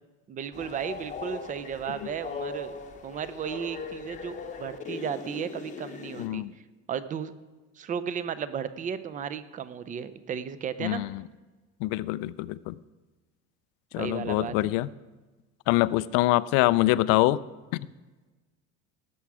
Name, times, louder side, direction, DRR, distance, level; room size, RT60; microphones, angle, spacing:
voice 1, 0.3-2.8 3.0-6.4 6.9-7.3 7.8-11.0 14.0-14.7, right 8 dB, 25° right, 13 dB, 0.5 m, -34 dB
Train, 0.5-6.3, left 4 dB, 20° left, 0.8 m, -39 dB
voice 2, 6.2-6.5 10.8-11.2 11.8-12.8 13.9-14.9 15.7-17.4, left 17 dB, 70° left, 18 dB, 0.5 m, -24 dB
17.5 x 7.1 x 4.8 m, 1.2 s
cardioid pair, 150°, 33 cm